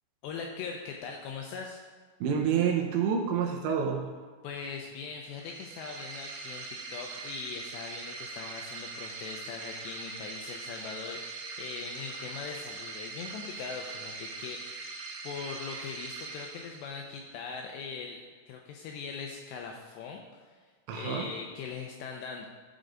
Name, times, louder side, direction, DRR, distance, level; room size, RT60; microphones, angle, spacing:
voice 1, 0.2-1.8 4.4-14.9 15.2-20.4 20.9-22.5, left 5 dB, 90° left, 1 dB, 2.5 m, -41 dB
voice 2, 2.2-4.1 20.9-21.3, right 7 dB, 80° right, 2 dB, 2.9 m, -28 dB
sound 1, 5.3-17.2, right 4 dB, 65° right, 2.8 m, -42 dB
14.5 x 5.1 x 3.9 m, 1.5 s
omnidirectional pair, 5.6 m